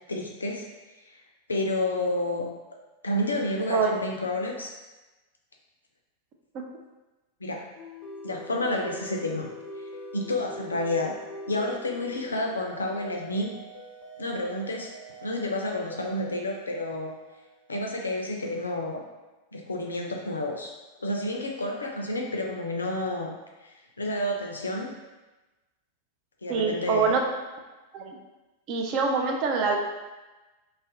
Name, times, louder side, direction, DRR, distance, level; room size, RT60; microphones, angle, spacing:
voice 1, 0.1-0.7 1.5-2.5 3.0-4.7 7.4-7.6 8.2-9.5 10.1-11.1 11.5-13.5 14.2-14.9 15.2-17.1 17.7-19.0 19.5-20.7 21.0-23.3 23.6-24.9 26.4-27.1, left 1 dB, 75° left, 1 dB, 0.3 m, -30 dB
sound 1, 7.7-18.1, equal, 25° left, 0.5 m, -44 dB
voice 2, 26.5-27.2 27.9-28.2 28.7-29.8, right 5 dB, 40° right, 1 dB, 0.4 m, -25 dB
2.3 x 2.0 x 2.6 m, 1.1 s
figure-of-eight pair, 90°, 0 cm